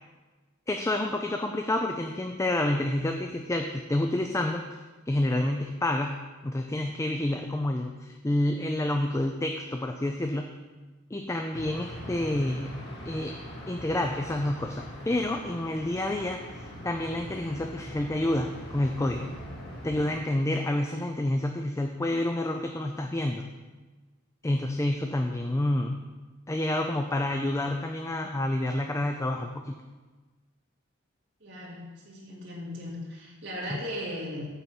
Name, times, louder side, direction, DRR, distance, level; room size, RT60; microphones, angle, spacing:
voice 1, 0.7-4.6 5.1-6.2 6.4-10.5 11.1-12.8 13.1-13.3 13.7-19.3 19.8-23.4 24.4-26.0 26.5-29.8 33.7-33.8, left 1 dB, 15° left, 4 dB, 0.4 m, -29 dB
sound 1, 11.5-20.1, equal, 55° left, 2.2 m, -42 dB
voice 2, 31.4-34.5, left 1 dB, 60° right, -5 dB, 2.1 m, -37 dB
9.4 x 4.2 x 7.3 m, 1.3 s
head